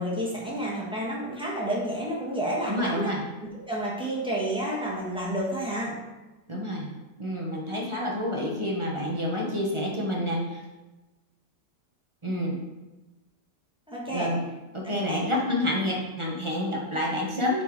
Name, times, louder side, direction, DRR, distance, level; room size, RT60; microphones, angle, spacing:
voice 1, 0.0-3.2 3.4-6.0 13.9-14.3 14.8-15.2, right 1 dB, 5° right, -5 dB, 1.4 m, -30 dB
voice 2, 2.7-3.2 6.5-6.9 7.2-10.6 12.2-12.6 14.1-14.4 14.7-17.6, left 1 dB, 25° right, -2 dB, 0.8 m, -28 dB
6.6 x 4.5 x 4.7 m, 1.1 s
omnidirectional pair, 2.0 m